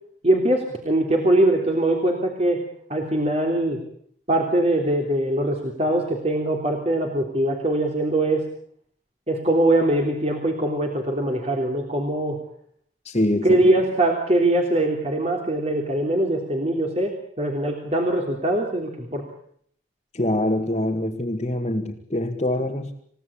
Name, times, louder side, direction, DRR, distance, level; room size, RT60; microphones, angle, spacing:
voice 1, 0.2-2.6 2.9-3.8 4.3-8.4 9.3-12.4 13.4-19.2, right 1 dB, 35° right, 2 dB, 3.3 m, -22 dB
voice 2, 13.0-13.6 20.1-22.9, left 1 dB, 35° left, 0 dB, 1.9 m, -24 dB
28.5 x 17.0 x 8.6 m, 0.65 s
head